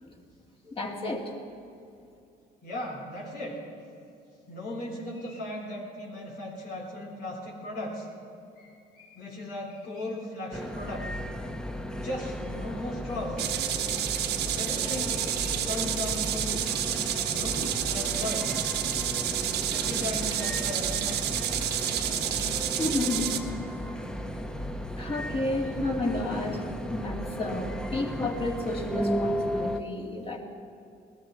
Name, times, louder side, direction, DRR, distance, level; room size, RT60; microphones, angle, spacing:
voice 1, 0.7-1.3 22.8-23.4 25.0-26.6 26.9-30.4, left 2 dB, 35° left, 1 dB, 2.5 m, -31 dB
voice 2, 2.6-3.6 4.5-8.1 8.6-11.1 11.4-11.5 12.0-13.4 14.5-16.6 17.3-18.6 19.7-21.3, left 1 dB, 70° left, -3 dB, 3.8 m, -37 dB
sound 1, 10.5-29.8, equal, 5° left, 0.8 m, -35 dB
sound 2, 13.4-23.4, right 11 dB, 80° right, 1.2 m, -30 dB
19.0 x 13.0 x 5.6 m, 2.5 s
cardioid pair, 110°, 17 cm